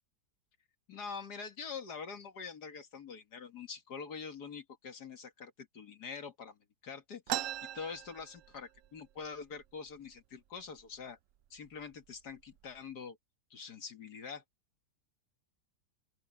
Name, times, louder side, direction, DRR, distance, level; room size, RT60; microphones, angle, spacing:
voice 1, 0.9-11.2 11.5-13.2 13.5-14.4, left 5 dB, 60° left, 2.4 m, -45 dB
sound 1, 7.3-8.9 9.2-9.3 9.6-10.2 10.8-10.9 11.7-11.8 12.3-12.8, right 14 dB, 85° right, 0.7 m, -39 dB
open air
omnidirectional pair, 1.9 m